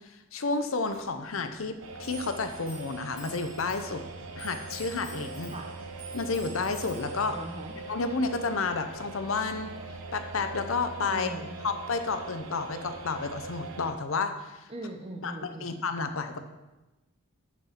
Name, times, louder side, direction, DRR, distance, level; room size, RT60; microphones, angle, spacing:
voice 1, 0.3-4.0 4.4-5.5 6.1-7.4 7.9-9.7 10.1-11.3 11.6-14.7 15.2-16.4, left 4 dB, 65° left, 8 dB, 0.7 m, -31 dB
Clock, 0.9-10.8, right 2 dB, 15° left, 1.9 m, -50 dB
sound 1, 1.8-13.9, right 3 dB, 70° right, 0.8 m, -42 dB
voice 2, 7.3-7.7 11.1-11.6 14.7-15.8, right 1 dB, 25° right, 4 dB, 0.8 m, -40 dB
7.0 x 6.0 x 5.9 m, 1.0 s
head